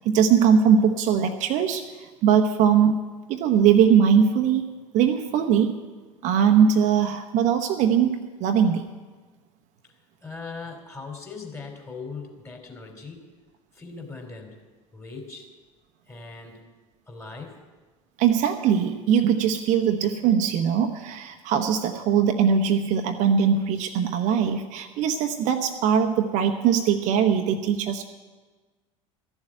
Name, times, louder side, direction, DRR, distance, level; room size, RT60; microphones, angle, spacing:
voice 1, 0.0-3.0 3.3-4.7 4.9-5.7 6.2-8.8 18.2-28.0, right 7 dB, 45° right, 5 dB, 1.0 m, -21 dB
voice 2, 9.9-13.2 13.7-14.6 14.9-15.5 16.1-16.6 17.0-17.6, left 4 dB, 15° left, 2 dB, 3.3 m, -40 dB
14.0 x 7.3 x 9.0 m, 1.3 s
figure-of-eight pair, 70°, 17 cm